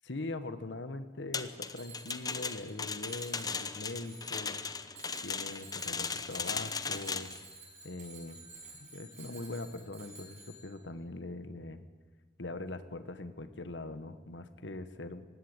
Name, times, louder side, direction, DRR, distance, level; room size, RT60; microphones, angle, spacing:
voice 1, 0.0-4.6 5.2-7.3 7.8-8.4 8.8-11.9 12.4-15.3, left 2 dB, 80° left, 11 dB, 1.3 m, -42 dB
sound 1, 1.3-7.4, left 5 dB, 20° left, 0.8 m, -37 dB
Bicycle bell, 1.8-2.7 3.0-4.6 4.9-10.9, right 3 dB, 40° right, 6.7 m, -52 dB
19.0 x 16.5 x 8.9 m, 1.4 s
head